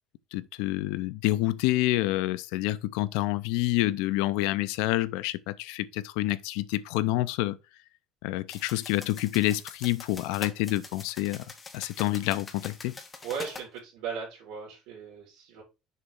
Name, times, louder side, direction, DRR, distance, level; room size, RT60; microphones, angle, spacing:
voice 1, 0.3-7.6 8.2-12.9, left 17 dB, 85° left, 0.5 m, -28 dB
sound 1, 8.5-13.7, left 4 dB, 15° left, 0.8 m, -44 dB
voice 2, 13.2-15.6, right 6 dB, 80° right, 2.9 m, -37 dB
6.6 x 3.0 x 5.3 m
cardioid pair, 175°, 0 cm